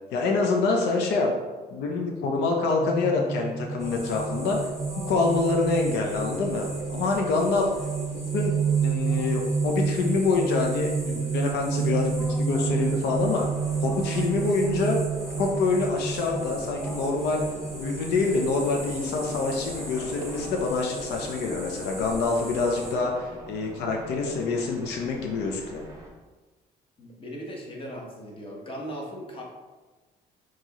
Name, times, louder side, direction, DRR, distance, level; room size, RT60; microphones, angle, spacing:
voice 1, 0.1-1.3 1.7-4.6 5.1-7.7 8.1-8.5 8.8-13.5 13.8-15.0 15.4-17.4 17.7-25.8, left 3 dB, 80° left, 1 dB, 0.7 m, -26 dB
sound 1, 2.8-22.0, right 5 dB, 45° right, 0.5 m, -31 dB
sound 2, 3.8-22.9, equal, ahead, 1.2 m, -40 dB
sound 3, 12.6-26.1, right 1 dB, 20° right, 0.9 m, -44 dB
voice 2, 27.0-29.4, equal, 30° left, -1 dB, 1.0 m, -38 dB
4.6 x 3.0 x 2.9 m, 1.3 s
cardioid pair, 110°, 17 cm